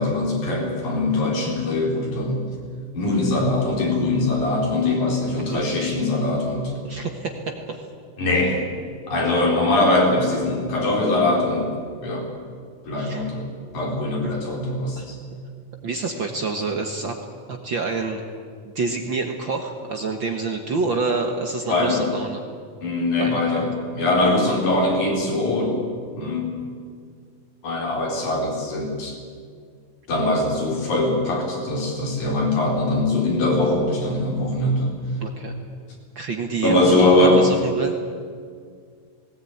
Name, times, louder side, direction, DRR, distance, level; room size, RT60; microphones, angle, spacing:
voice 1, 0.0-2.4 2.9-6.7 8.2-8.6 9.1-11.7 12.0-12.3 12.9-13.5 13.7-15.1 21.7-22.1 22.8-25.8 26.2-26.5 27.6-29.2 30.1-34.9 36.6-37.5, left 2 dB, 75° left, -1 dB, 5.6 m, -22 dB
voice 2, 6.8-7.8 8.3-8.5 12.9-13.3 14.2-14.4 15.0-15.1 15.8-17.2 17.5-18.2 18.6-22.4 23.2-23.6 35.2-35.6 36.1-37.9, right 4 dB, 50° right, 4 dB, 1.6 m, -28 dB
19.0 x 18.5 x 9.4 m, 2.1 s
omnidirectional pair, 3.5 m